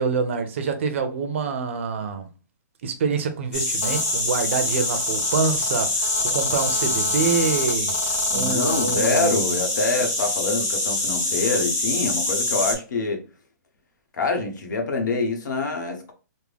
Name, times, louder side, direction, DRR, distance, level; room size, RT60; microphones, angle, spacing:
voice 1, 0.0-2.3 2.8-8.0 8.3-9.6, right 5 dB, 40° right, 0.5 m, -26 dB
sound 1, 3.5-12.7, left 2 dB, 20° left, 1.1 m, -25 dB
Telephone, 3.8-9.2, left 4 dB, 55° left, 0.4 m, -34 dB
voice 2, 8.3-13.2 14.1-16.1, left 3 dB, 80° left, 1.1 m, -25 dB
3.5 x 2.1 x 3.3 m
hypercardioid pair, 175°, 10 cm